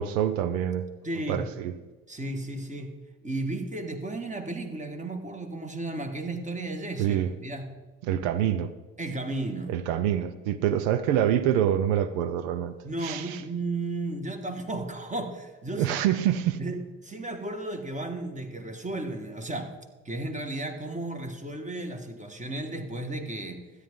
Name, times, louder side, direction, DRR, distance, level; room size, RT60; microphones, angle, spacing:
voice 1, 0.0-0.9 1.3-1.7 7.0-7.3 8.0-8.7 9.7-12.7 13.0-13.4 15.7-16.6, right 10 dB, 85° right, 0.6 m, -26 dB
voice 2, 1.0-1.5 2.1-3.0 3.2-7.7 9.0-9.8 12.8-16.0 16.6-19.7 20.0-23.6, right 2 dB, 20° right, 1.7 m, -34 dB
13.0 x 9.6 x 3.7 m
supercardioid pair, 70°, 38 cm